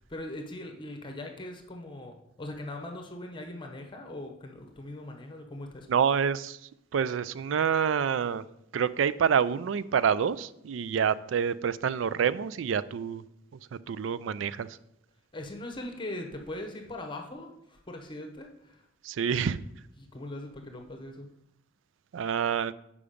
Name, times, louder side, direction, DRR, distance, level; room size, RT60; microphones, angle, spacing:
voice 1, 0.1-5.9 15.3-18.9 20.0-21.3, left 1 dB, 25° left, 3 dB, 0.8 m, -40 dB
voice 2, 5.9-6.6 6.9-8.4 8.7-13.2 13.7-14.7 19.0-19.6 22.1-22.7, right 7 dB, 90° right, 17 dB, 0.4 m, -27 dB
6.9 x 5.0 x 5.1 m, 0.80 s
head